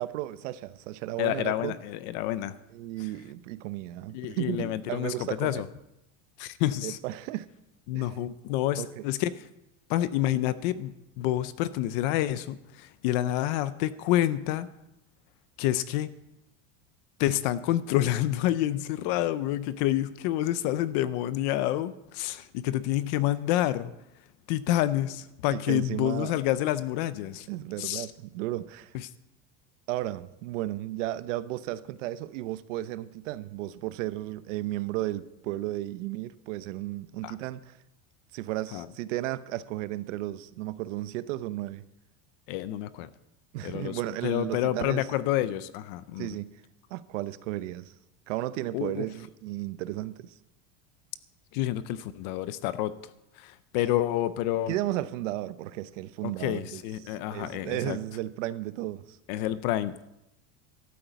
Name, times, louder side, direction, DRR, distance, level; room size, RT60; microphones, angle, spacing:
voice 1, 0.0-1.7 2.7-5.6 6.8-7.5 7.9-8.1 8.8-9.0 25.5-26.3 27.5-28.9 29.9-37.8 38.3-41.8 43.5-45.1 46.2-46.5 46.9-47.9 48.3-50.4 54.7-59.2, right 15 dB, 70° right, 0.8 m, -34 dB
voice 2, 1.2-2.6 4.1-5.6 6.4-7.0 7.9-9.3 9.9-14.7 15.6-16.1 17.2-23.9 24.5-27.5 27.8-28.1 37.2-37.3 38.7-38.9 42.5-43.1 43.6-46.4 48.7-49.0 51.5-52.9 53.4-54.7 56.2-58.0 59.3-60.0, left 13 dB, 35° left, 0.4 m, -28 dB
13.0 x 8.9 x 8.1 m
supercardioid pair, 175°, 39 cm